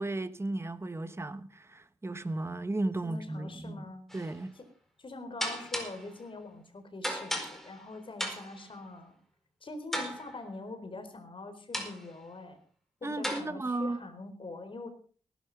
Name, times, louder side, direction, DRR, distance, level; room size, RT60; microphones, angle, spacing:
voice 1, 0.0-3.9 4.1-4.5 13.0-14.0, right 2 dB, 20° right, 1.3 m, -35 dB
voice 2, 3.0-4.0 4.6-4.7 5.0-9.2 9.6-12.6 13.0-14.9, left 2 dB, 50° left, 4.3 m, -43 dB
sound 1, 4.1-4.4 5.4-6.1 7.0-7.8 8.2-8.6 9.9-10.5 11.7-12.1 13.2-13.4, equal, 5° left, 4.5 m, -36 dB
18.5 x 11.5 x 5.3 m
cardioid pair, 80°, 12 cm